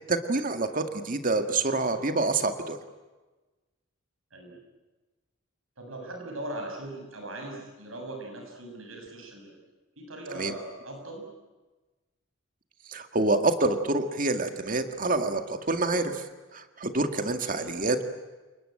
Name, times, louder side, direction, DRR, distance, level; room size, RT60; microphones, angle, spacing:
voice 1, 0.1-2.8 10.4-10.5 12.9-16.2 16.5-18.0, right 2 dB, 40° right, 7 dB, 1.9 m, -27 dB
voice 2, 4.3-4.6 5.8-9.5 10.0-11.3 17.5-17.8, right 1 dB, 80° right, 2 dB, 7.2 m, -40 dB
30.0 x 20.0 x 8.9 m, 1.2 s
head